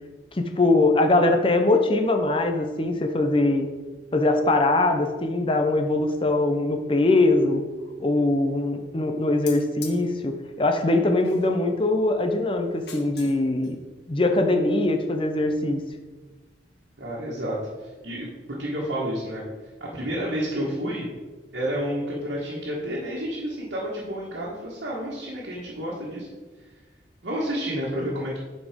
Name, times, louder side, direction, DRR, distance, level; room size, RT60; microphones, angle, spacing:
voice 1, 0.3-3.7 4.1-7.6 8.0-13.8 14.1-15.8, left 2 dB, 30° left, 5 dB, 0.6 m, -22 dB
sound 1, 9.5-10.0 11.2-11.7 12.7-13.4 13.6-13.7, left 6 dB, 65° left, 1.2 m, -42 dB
voice 2, 17.0-19.4 19.8-21.1 21.5-26.3 27.2-28.4, equal, 75° right, -6 dB, 1.5 m, -30 dB
7.5 x 4.3 x 5.1 m, 1.3 s
head